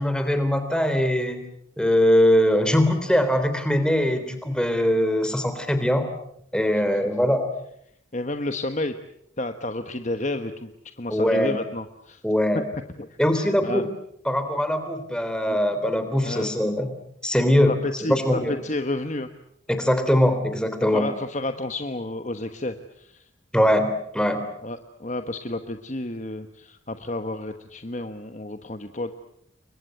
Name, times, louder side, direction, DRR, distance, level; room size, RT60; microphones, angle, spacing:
voice 1, 0.0-1.4 1.8-6.1 6.5-7.5 11.1-11.6 12.2-12.6 13.2-13.9 14.3-16.9 17.2-18.6 19.7-21.1 23.5-24.4, equal, 5° left, 8 dB, 3.5 m, -22 dB
voice 2, 8.1-8.9 9.4-10.7 11.0-12.2 13.0-13.1 13.3-13.8 15.5-15.6 16.2-16.5 17.7-19.3 20.9-23.3 24.6-29.1, left 2 dB, 35° left, 7 dB, 1.2 m, -31 dB
29.5 x 23.0 x 7.9 m, 0.73 s
head